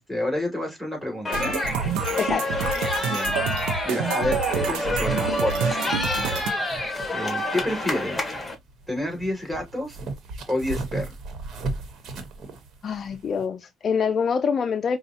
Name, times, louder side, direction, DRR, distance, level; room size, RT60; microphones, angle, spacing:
voice 1, 0.0-1.6 3.0-3.3 3.8-8.3 8.9-10.0 10.5-11.2, left 1 dB, 5° right, 2.9 m, -30 dB
sound 1, 1.2-8.5, left 1 dB, 20° left, 1.2 m, -28 dB
sound 2, 1.3-6.5, right 7 dB, 90° right, 0.6 m, -28 dB
voice 2, 2.2-2.5 12.8-15.0, left 6 dB, 45° left, 0.4 m, -25 dB
sound 3, 6.3-13.5, right 3 dB, 60° right, 1.2 m, -37 dB
5.1 x 2.3 x 2.8 m
cardioid pair, 90°, 0 cm